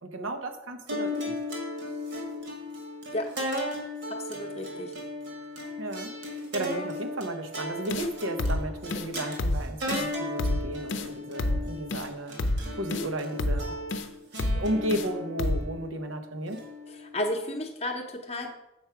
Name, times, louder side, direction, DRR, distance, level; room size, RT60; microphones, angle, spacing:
voice 1, 0.0-1.3 5.8-12.4 12.7-13.7 14.5-16.6, right 1 dB, 85° right, 6 dB, 0.9 m, -34 dB
sound 1, 0.9-17.3, left 1 dB, 65° right, 2.0 m, -36 dB
voice 2, 4.1-4.9 16.9-18.5, left 1 dB, 30° left, 4 dB, 0.8 m, -33 dB
sound 2, 7.9-8.1 8.4-8.6 8.9-9.1 9.4-9.6 9.9-10.1 10.4-10.6 10.9-11.1 11.4-11.6 11.9-12.1 12.4-12.6 12.9-13.1 13.4-13.6 13.9-14.1 14.4-14.6 14.9-15.1 15.4-15.6, left 1 dB, 70° left, 0.6 m, -28 dB
7.3 x 4.6 x 5.8 m, 0.93 s
head